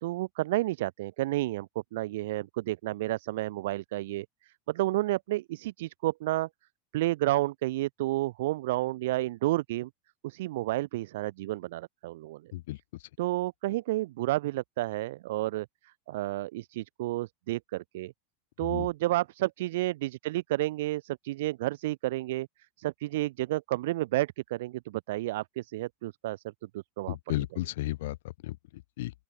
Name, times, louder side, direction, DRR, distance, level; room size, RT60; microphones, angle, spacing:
voice 1, 0.0-4.3 4.7-6.5 6.9-9.9 10.2-12.5 13.2-15.7 16.1-18.1 18.6-22.5 22.8-26.4 26.7-27.2, right 17 dB, 60° right, 0.6 m, -31 dB
voice 2, 12.5-13.1 18.6-18.9 27.1-29.1, left 17 dB, 60° left, 2.1 m, -35 dB
open air
figure-of-eight pair, 85°, 0 cm